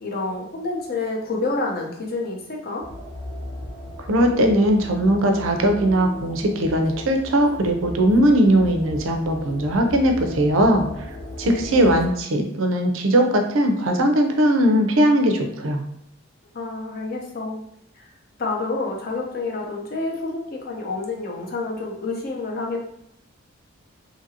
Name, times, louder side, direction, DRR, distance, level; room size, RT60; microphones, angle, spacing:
voice 1, 0.0-2.9 11.7-12.0 16.5-17.6 18.0-18.1 18.4-22.8, left 3 dB, 45° left, 0 dB, 0.6 m, -28 dB
sound 1, 2.8-12.1, left 1 dB, 70° left, 1.0 m, -36 dB
voice 2, 4.0-10.9 11.4-15.8, right 1 dB, 80° right, 4 dB, 0.5 m, -19 dB
2.8 x 2.5 x 2.7 m, 0.74 s
head